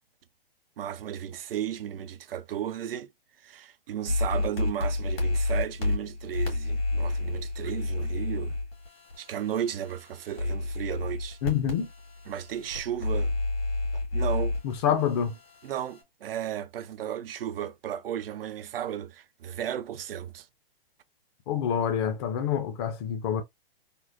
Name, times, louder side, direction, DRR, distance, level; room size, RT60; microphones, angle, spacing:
voice 1, 0.8-3.1 3.4-8.6 9.2-11.4 12.3-13.3 14.1-14.6 15.6-20.5, right 10 dB, 75° right, 0.5 m, -34 dB
sound 1, 4.1-16.0, left 2 dB, 80° left, 1.9 m, -31 dB
voice 2, 11.4-11.9 14.6-15.4 21.5-23.4, left 8 dB, 30° left, 0.5 m, -27 dB
3.6 x 2.1 x 2.5 m
hypercardioid pair, 130°, 29 cm